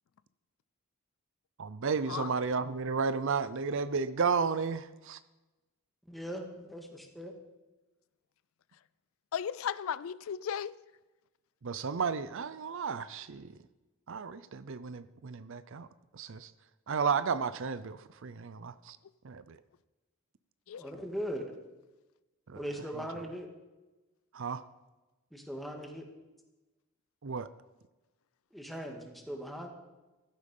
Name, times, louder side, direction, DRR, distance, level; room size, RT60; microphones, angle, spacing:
voice 1, 1.6-5.2 11.6-13.5 14.1-15.9 16.1-16.5 16.9-19.0 19.2-19.6 22.5-22.6 24.3-24.6 27.2-27.5, right 5 dB, 60° right, 0.5 m, -33 dB
voice 2, 6.1-7.3 20.8-21.5 22.6-23.5 25.3-26.1 28.5-29.7, equal, ahead, 2.0 m, -39 dB
voice 3, 9.3-10.7 20.7-20.9, left 8 dB, 65° left, 0.4 m, -35 dB
15.0 x 12.5 x 5.5 m
head